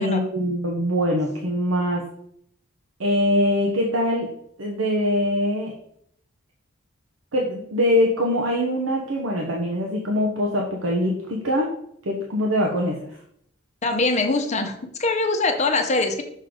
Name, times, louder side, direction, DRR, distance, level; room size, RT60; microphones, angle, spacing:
voice 1, 0.0-2.0 3.0-4.3 4.6-5.7 7.3-11.7 12.0-13.2, left 1 dB, 80° right, 0 dB, 1.0 m, -23 dB
voice 2, 13.8-16.2, left 3 dB, 35° left, 5 dB, 0.8 m, -23 dB
6.5 x 3.8 x 5.0 m, 0.69 s
head